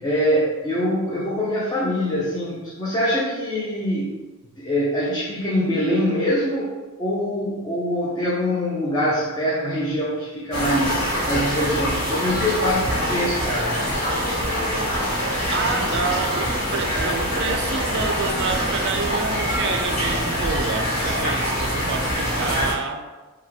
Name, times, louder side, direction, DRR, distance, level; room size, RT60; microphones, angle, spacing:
voice 1, 0.0-4.2 4.6-13.8, equal, 20° left, -6 dB, 0.4 m, -24 dB
sound 1, 10.5-22.7, equal, 90° left, 1.1 m, -24 dB
voice 2, 15.5-23.1, right 5 dB, 50° right, 5 dB, 0.3 m, -28 dB
3.4 x 2.2 x 3.2 m, 1.2 s
head